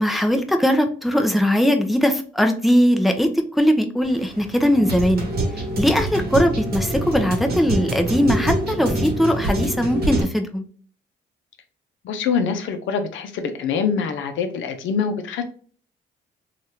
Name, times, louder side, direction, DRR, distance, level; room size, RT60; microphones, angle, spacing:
voice 1, 0.0-5.3 5.5-10.6, equal, ahead, 5 dB, 0.5 m, -20 dB
sound 1, 4.0-10.2, right 1 dB, 50° right, 1.0 m, -25 dB
voice 2, 12.0-15.4, left 6 dB, 75° left, 7 dB, 0.6 m, -24 dB
3.1 x 2.4 x 2.7 m, 0.43 s
cardioid pair, 90°, 20 cm